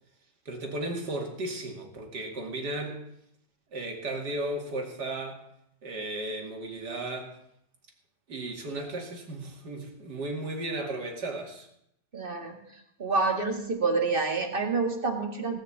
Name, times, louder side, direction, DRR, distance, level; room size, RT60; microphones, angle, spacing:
voice 1, 0.5-3.0 3.7-5.4 5.8-7.3 8.3-11.7, right 2 dB, 70° right, 2 dB, 2.9 m, -35 dB
voice 2, 12.1-15.6, right 4 dB, 30° right, 4 dB, 2.1 m, -28 dB
18.0 x 6.3 x 8.5 m, 0.76 s
omnidirectional pair, 1.8 m